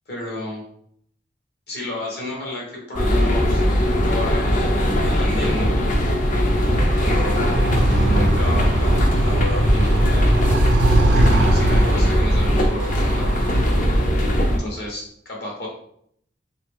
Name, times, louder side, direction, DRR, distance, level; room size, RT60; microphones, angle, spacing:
voice 1, 0.1-0.6 1.7-3.6 4.0-4.6 5.0-5.8 6.9-10.0 11.0-13.4 14.6-15.7, left 1 dB, 65° left, -3 dB, 1.4 m, -31 dB
sound 1, 2.9-14.6, equal, 50° left, 0.5 m, -19 dB
Animal, 5.8-14.3, right 1 dB, 80° right, 0.5 m, -22 dB
3.0 x 2.8 x 3.6 m, 0.68 s
head